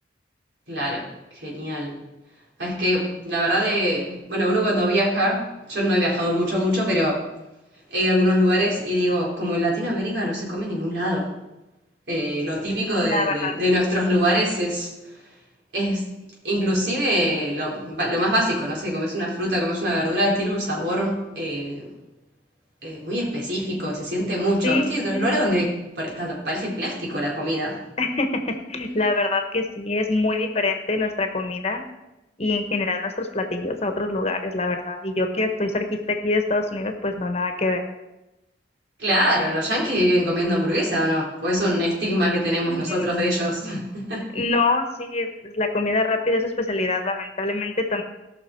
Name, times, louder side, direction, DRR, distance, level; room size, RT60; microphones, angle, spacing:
voice 1, 0.7-1.0 1.4-2.0 2.6-5.4 5.7-7.2 7.9-11.3 12.1-14.9 15.7-16.0 16.4-21.9 22.8-27.8 39.0-44.3, equal, 70° right, -3 dB, 4.2 m, -23 dB
voice 2, 13.0-13.5 24.6-25.3 28.0-28.4 28.7-31.8 32.4-37.8 42.5-43.1 44.3-48.0, left 2 dB, 35° left, 5 dB, 1.2 m, -25 dB
17.5 x 6.1 x 4.6 m, 0.99 s
head